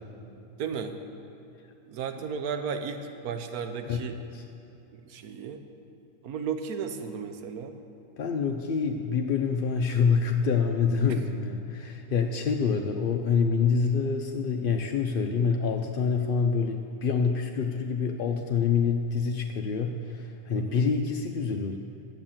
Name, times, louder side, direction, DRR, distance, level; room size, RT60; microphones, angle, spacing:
voice 1, 0.6-1.0 1.9-4.2 5.1-5.6 6.2-7.7 11.1-11.2 20.5-20.8, right 6 dB, 85° right, 7 dB, 1.3 m, -34 dB
voice 2, 3.8-4.4 8.2-21.8, left 5 dB, 60° left, 3 dB, 0.6 m, -26 dB
11.0 x 8.0 x 7.3 m, 3.0 s
omnidirectional pair, 1.5 m